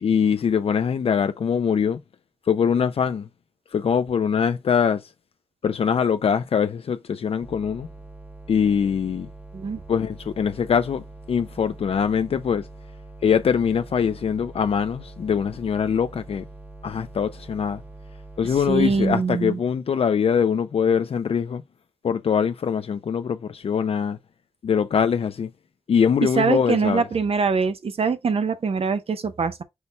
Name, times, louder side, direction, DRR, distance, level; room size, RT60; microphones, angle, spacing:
voice 1, 0.0-2.0 2.5-3.3 3.7-5.1 5.6-7.9 8.5-9.3 9.9-12.7 13.2-16.5 16.8-17.8 18.4-21.6 22.0-24.2 24.6-25.5 25.9-27.1, left 7 dB, 70° left, 0.4 m, -23 dB
sound 1, 7.4-19.2, right 2 dB, 15° right, 0.8 m, -43 dB
voice 2, 18.7-19.6 26.2-29.6, right 5 dB, 70° right, 0.6 m, -23 dB
5.6 x 2.2 x 4.0 m
wide cardioid pair, 70°, 10 cm